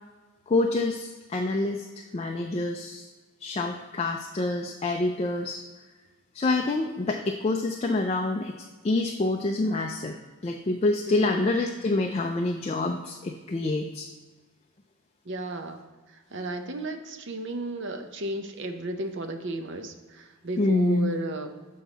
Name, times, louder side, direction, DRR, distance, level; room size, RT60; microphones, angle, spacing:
voice 1, 0.5-1.9 2.1-3.1 3.4-5.6 6.3-8.5 8.8-10.2 10.4-14.1 20.6-21.2, left 2 dB, 30° left, 3 dB, 0.3 m, -27 dB
voice 2, 11.1-11.6 15.3-15.8 16.1-21.5, right 1 dB, 55° right, 6 dB, 0.6 m, -34 dB
7.4 x 4.6 x 3.9 m, 1.3 s
head